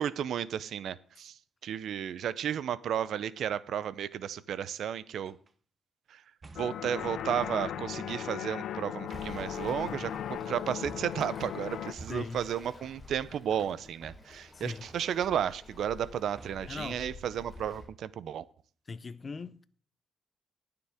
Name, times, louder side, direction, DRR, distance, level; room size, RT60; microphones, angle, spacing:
voice 1, 0.0-5.4 6.1-6.2 6.6-18.4, right 9 dB, 70° right, 0.6 m, -33 dB
sound 1, 5.2-5.5 6.4-6.9 8.1-8.6 9.1-10.0 10.8-11.3 12.0-12.6 14.0-14.6 14.9-15.3 16.3-16.9 17.5-18.0, right 3 dB, 30° right, 0.9 m, -51 dB
sound 2, 6.6-11.9, left 10 dB, 70° left, 0.5 m, -37 dB
Waves surf, 9.1-17.9, left 2 dB, 15° left, 3.9 m, -50 dB
voice 2, 12.1-12.4 14.5-14.8 16.7-17.0 18.9-19.6, left 4 dB, 30° left, 0.6 m, -39 dB
19.5 x 6.9 x 3.6 m
cardioid pair, 135°, 0 cm